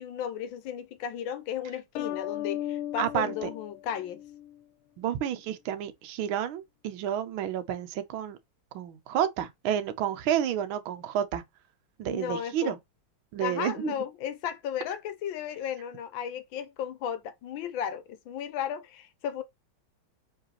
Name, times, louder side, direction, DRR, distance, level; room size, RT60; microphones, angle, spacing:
voice 1, 0.0-4.2 12.0-12.7 13.4-19.4, left 9 dB, 75° left, 1.4 m, -35 dB
sound 1, 2.0-4.6, left 12 dB, 90° left, 1.4 m, -36 dB
voice 2, 3.0-3.5 5.0-8.4 8.7-11.4 12.0-12.8 13.3-13.9, right 10 dB, 90° right, 1.5 m, -30 dB
4.8 x 3.8 x 2.9 m
omnidirectional pair, 2.2 m